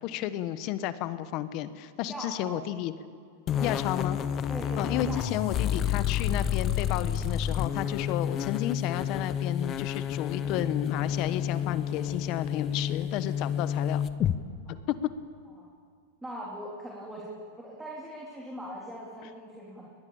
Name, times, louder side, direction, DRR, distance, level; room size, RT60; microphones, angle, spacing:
voice 1, 0.0-2.9 3.6-4.2 4.8-14.0 14.7-14.9, left 12 dB, 50° left, 13 dB, 1.1 m, -32 dB
voice 2, 2.1-2.6 3.6-3.8 4.5-5.8 14.7-14.8 15.6-15.7 16.2-19.8, equal, 5° right, -4 dB, 3.4 m, -41 dB
sound 1, 3.5-14.4, left 9 dB, 35° left, 0.9 m, -30 dB
23.5 x 20.0 x 7.2 m, 2.2 s
hypercardioid pair, 125°, 0 cm